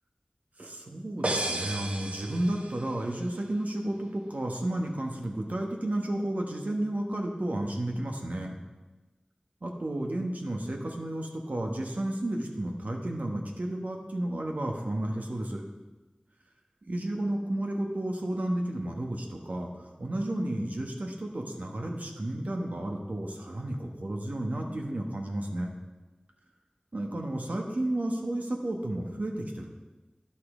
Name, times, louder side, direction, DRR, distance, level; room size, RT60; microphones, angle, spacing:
voice 1, 0.6-8.6 9.6-15.6 16.9-25.7 26.9-29.7, right 1 dB, 75° right, 1 dB, 1.2 m, -32 dB
sound 1, 1.2-3.0, right 1 dB, 50° right, 0.8 m, -33 dB
10.5 x 5.8 x 4.9 m, 1.2 s
wide cardioid pair, 50°, 3 cm